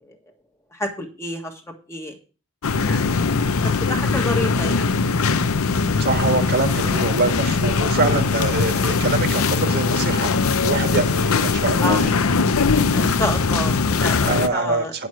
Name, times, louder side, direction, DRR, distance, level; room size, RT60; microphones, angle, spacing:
voice 1, 0.8-1.5 1.9-2.2 2.8-3.5 3.9-4.9 11.8-12.0 12.9-14.9, left 1 dB, 10° left, 1.6 m, -29 dB
sound 1, 2.6-14.5, left 4 dB, 70° left, 0.7 m, -20 dB
voice 2, 6.0-10.3 10.6-12.1 14.2-15.1, right 3 dB, 45° right, 1.8 m, -24 dB
10.0 x 6.3 x 6.2 m
head